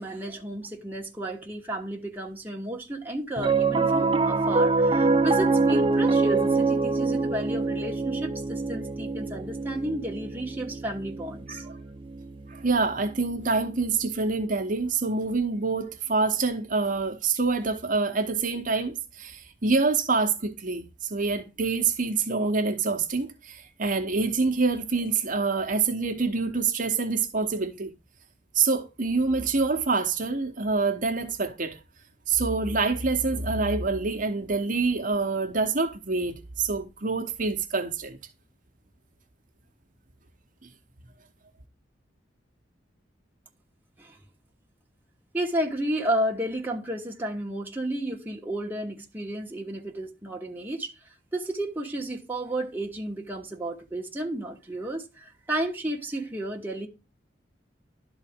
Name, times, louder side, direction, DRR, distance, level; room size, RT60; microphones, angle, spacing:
voice 1, 0.0-11.7 44.0-44.2 45.3-50.9 51.3-56.9, right 1 dB, 10° right, 1.2 m, -32 dB
Piano, 3.4-13.9, right 3 dB, 30° right, 0.5 m, -25 dB
voice 2, 12.5-27.9 28.5-31.8 32.3-38.2 40.6-40.7, right 4 dB, 45° right, 0.9 m, -26 dB
11.5 x 4.0 x 3.5 m
head